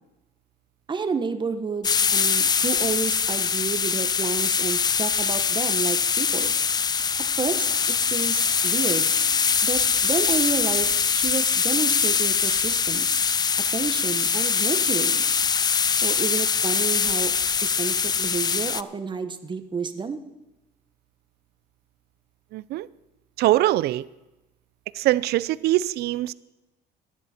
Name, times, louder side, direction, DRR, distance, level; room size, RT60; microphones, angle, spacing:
voice 1, 0.9-6.5 7.4-7.7 8.0-9.1 9.6-13.2 13.7-15.2 16.0-17.3 17.6-20.2, right 5 dB, 25° right, 9 dB, 1.1 m, -30 dB
sound 1, 1.8-18.8, left 6 dB, 25° left, 0.4 m, -23 dB
voice 2, 22.5-22.9 23.4-24.1 24.9-26.3, right 15 dB, 70° right, 19 dB, 0.5 m, -22 dB
16.0 x 11.0 x 4.4 m, 0.99 s
cardioid pair, 110°, 17 cm